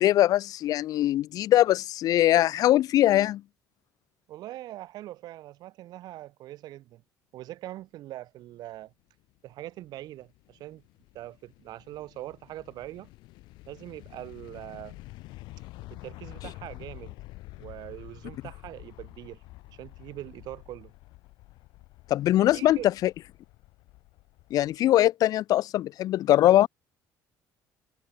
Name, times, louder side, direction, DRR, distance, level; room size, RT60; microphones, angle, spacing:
voice 1, 0.0-3.4 22.1-23.1 24.5-26.7, left 13 dB, 55° left, 0.6 m, -22 dB
voice 2, 4.3-7.0 7.3-8.9 9.4-10.8 11.1-13.1 13.7-15.0 15.9-17.1 17.6-19.4 19.7-20.9 22.5-22.9, right 15 dB, 65° right, 7.1 m, -42 dB
sound 1, 9.2-24.8, left 20 dB, 85° left, 2.5 m, -48 dB
cardioid pair, 155°, 8 cm